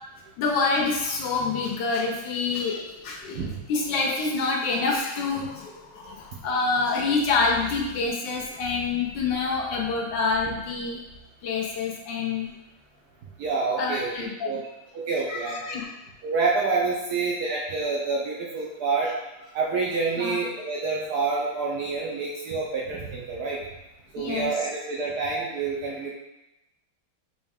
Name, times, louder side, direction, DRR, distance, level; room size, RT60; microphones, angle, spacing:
voice 1, 0.4-11.0 11.4-12.5 13.8-14.5 15.3-15.8 20.2-20.4 24.2-24.5, left 4 dB, 70° left, 0 dB, 1.2 m, -27 dB
voice 2, 13.4-14.6 14.9-15.8 16.2-19.1 19.5-23.6 24.1-26.1, right 4 dB, 75° right, -4 dB, 0.9 m, -28 dB
5.2 x 2.2 x 3.4 m, 0.94 s
omnidirectional pair, 2.2 m